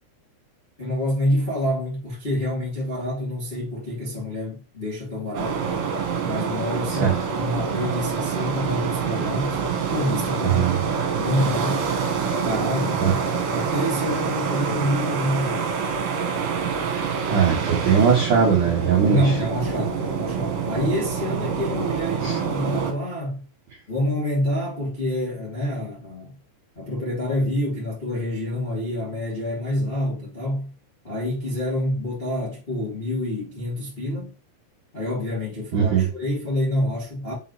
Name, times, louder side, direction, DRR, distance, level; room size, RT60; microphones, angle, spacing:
voice 1, 0.8-5.6 6.2-9.6 9.9-10.7 11.1-11.9 12.4-13.2 13.5-15.7 19.1-23.4 23.9-26.3 26.7-30.7 31.0-34.3 34.9-37.3, left 1 dB, 35° left, 0.9 m, -27 dB
sound 1, 5.3-22.9, right 6 dB, 70° right, 3.3 m, -26 dB
voice 2, 10.4-10.8 13.0-13.1 16.8-19.2 22.2-22.4 35.7-36.1, right 7 dB, 90° right, 1.8 m, -20 dB
7.2 x 5.1 x 3.1 m
omnidirectional pair, 5.8 m